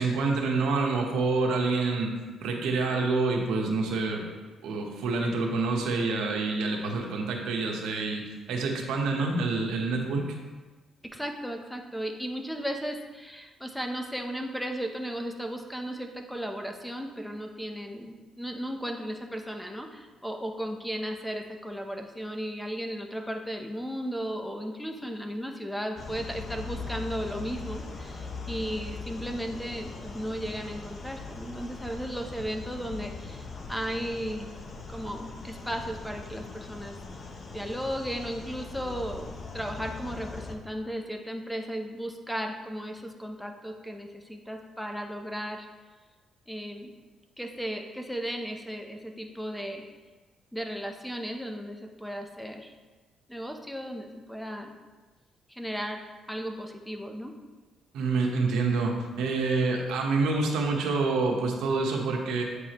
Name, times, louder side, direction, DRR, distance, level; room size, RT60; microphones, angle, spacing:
voice 1, 0.0-2.1 2.4-4.3 4.6-10.3 57.9-62.4, right 3 dB, 85° right, 1 dB, 1.0 m, -27 dB
voice 2, 11.0-34.5 34.9-37.0 37.5-45.7 46.5-46.9 47.4-49.8 50.5-52.7 53.3-54.7 55.5-56.0 56.3-57.4, equal, 5° left, 4 dB, 0.7 m, -35 dB
sound 1, 26.0-40.6, left 4 dB, 45° left, 0.7 m, -40 dB
8.2 x 4.7 x 3.0 m, 1.3 s
cardioid pair, 90°, 0 cm